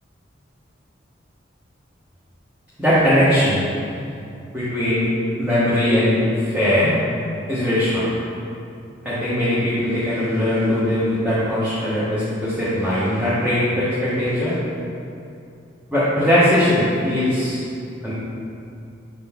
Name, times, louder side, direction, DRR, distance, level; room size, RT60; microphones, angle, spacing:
voice 1, 2.8-3.6 4.5-5.1 5.4-6.9 7.5-8.1 9.0-14.5 15.9-17.7 18.0-18.1, left 1 dB, 10° right, -13 dB, 1.0 m, -20 dB
6.7 x 3.9 x 3.6 m, 2.6 s
head